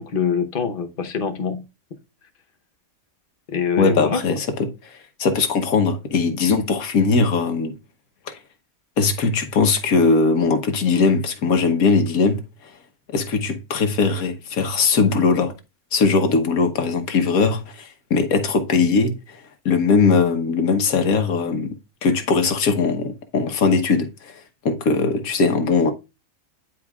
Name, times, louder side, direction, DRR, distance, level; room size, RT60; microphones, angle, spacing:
voice 1, 0.0-1.6 3.5-4.2, left 6 dB, 45° left, 1.0 m, -24 dB
voice 2, 3.8-7.8 8.3-8.4 9.0-12.4 13.1-15.5 15.9-21.7 22.0-25.9, left 4 dB, 75° left, 1.5 m, -20 dB
10.5 x 4.5 x 2.4 m
omnidirectional pair, 1.5 m